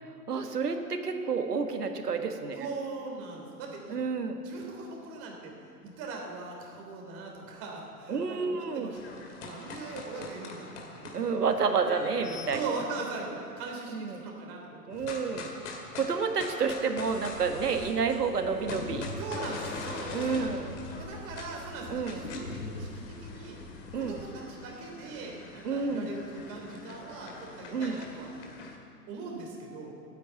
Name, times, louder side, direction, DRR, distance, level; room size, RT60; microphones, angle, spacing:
voice 1, 0.3-2.6 3.9-4.4 8.1-8.9 11.1-12.6 13.9-14.2 14.9-15.6 15.9-19.1 20.1-20.8 21.9-22.2 23.9-24.2 25.6-26.1 27.7-28.0, right 5 dB, 70° right, 6 dB, 1.6 m, -30 dB
voice 2, 2.5-4.0 4.4-5.5 5.8-11.3 12.0-15.0 15.8-16.0 19.2-20.2 21.0-22.9 23.2-23.6 23.9-28.3 29.1-29.9, right 3 dB, 30° right, 0 dB, 3.2 m, -40 dB
sound 1, 8.9-12.8 14.9-17.9 18.2-28.8, left 3 dB, 45° left, 2.3 m, -44 dB
sound 2, 17.0-24.3, left 2 dB, 80° left, 1.4 m, -43 dB
13.0 x 9.2 x 9.1 m, 2.5 s
figure-of-eight pair, 120°, 48 cm